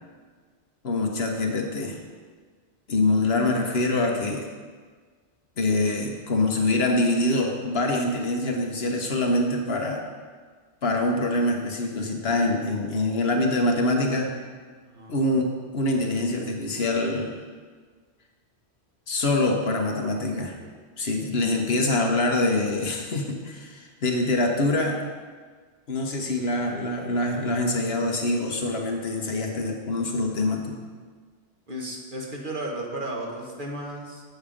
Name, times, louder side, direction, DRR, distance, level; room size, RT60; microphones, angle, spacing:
voice 1, 0.8-2.0 2.9-4.5 5.6-10.0 10.8-14.3 15.1-15.5 15.7-17.3 19.1-20.6 21.0-25.0 25.9-30.7, left 2 dB, 60° left, 2 dB, 1.2 m, -25 dB
voice 2, 31.7-34.2, right 1 dB, 45° right, -1 dB, 1.4 m, -34 dB
8.0 x 7.1 x 5.0 m, 1.5 s
omnidirectional pair, 1.2 m